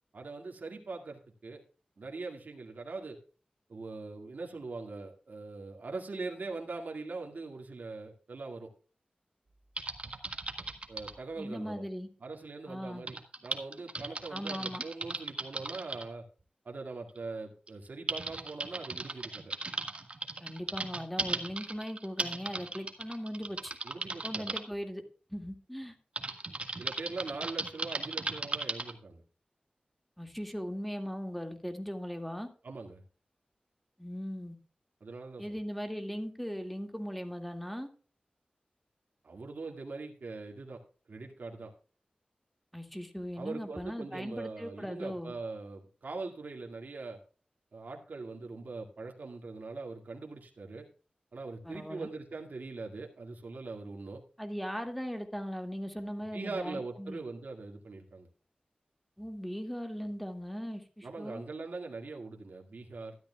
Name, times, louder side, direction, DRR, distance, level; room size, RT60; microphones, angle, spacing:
voice 1, 0.1-1.6 2.0-3.2 3.7-8.7 10.9-11.9 12.2-16.2 16.6-19.5 23.8-24.6 26.8-29.2 32.6-33.0 35.0-35.6 39.2-40.8 41.1-41.7 43.4-47.2 47.7-50.9 51.3-54.2 56.3-58.3 61.0-63.2, right 3 dB, 80° right, 1 dB, 2.0 m, -42 dB
Typing, 9.8-11.2 13.1-16.0 17.1-17.2 17.7-24.6 26.2-28.9, right 3 dB, 45° right, 1.7 m, -37 dB
voice 2, 11.4-12.1 12.7-13.0 14.3-14.8 20.4-23.7 24.2-25.0 25.3-26.0 30.2-32.5 34.0-34.6 35.4-37.9 42.7-45.3 51.6-52.1 54.4-57.2 59.2-61.4, equal, 5° left, 5 dB, 2.1 m, -39 dB
13.0 x 12.0 x 2.3 m, 0.39 s
wide cardioid pair, 80°, 3 cm